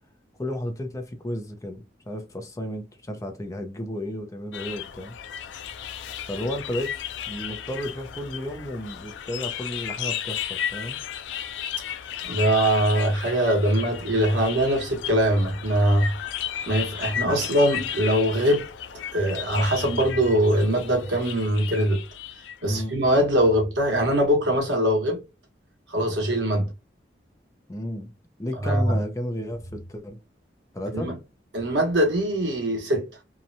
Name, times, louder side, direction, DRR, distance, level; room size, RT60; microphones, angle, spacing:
voice 1, 0.4-5.1 6.3-7.0 7.3-11.0 22.7-23.0 27.7-28.1 28.4-30.2 30.7-31.1, equal, 15° left, 0.5 m, -33 dB
sound 1, 4.5-22.8, left 10 dB, 90° left, 0.3 m, -34 dB
voice 2, 12.2-16.1 16.7-18.6 19.1-22.0 22.6-25.2 25.9-26.7 28.6-29.0 30.9-31.1 31.5-33.0, right 1 dB, 85° right, 1.1 m, -22 dB
2.8 x 2.1 x 2.5 m
head